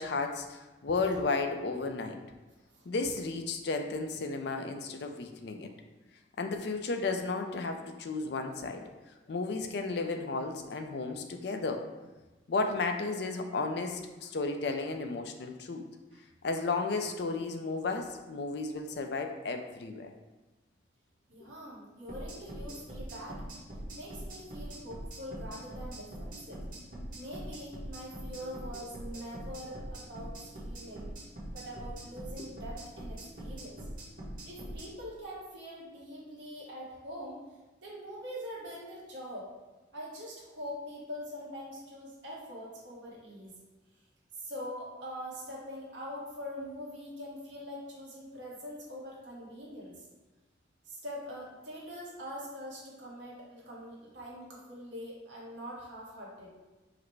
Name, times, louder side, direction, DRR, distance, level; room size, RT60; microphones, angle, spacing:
voice 1, 0.0-2.2 2.9-5.7 6.4-8.8 9.3-11.8 12.5-15.8 16.4-20.1, left 3 dB, 55° left, 5 dB, 0.4 m, -33 dB
voice 2, 21.3-23.4 24.0-26.6 27.2-31.1 31.5-33.8 34.5-37.4 37.8-39.5 39.9-43.5 44.3-50.1 50.9-56.5, equal, 70° right, -5 dB, 1.2 m, -43 dB
sound 1, 22.1-34.9, right 1 dB, 45° right, 1.2 m, -42 dB
4.8 x 2.1 x 4.5 m, 1.2 s
head